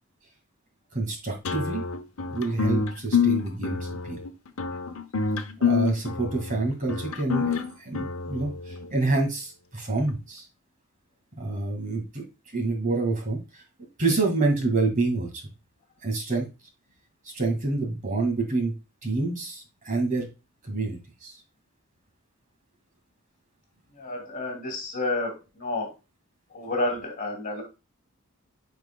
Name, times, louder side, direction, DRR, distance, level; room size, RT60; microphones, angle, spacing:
voice 1, 0.9-1.8 2.3-4.2 5.6-10.5 11.4-12.2 12.5-15.4 16.0-16.5 17.3-18.7 19.0-20.3 20.6-21.4, right 3 dB, 40° right, 2 dB, 2.0 m, -27 dB
sound 1, 1.4-8.9, left 6 dB, 80° left, 0.8 m, -27 dB
voice 2, 23.9-25.9 26.5-27.6, left 2 dB, 40° left, 2 dB, 2.7 m, -30 dB
9.2 x 4.8 x 2.3 m, 0.28 s
head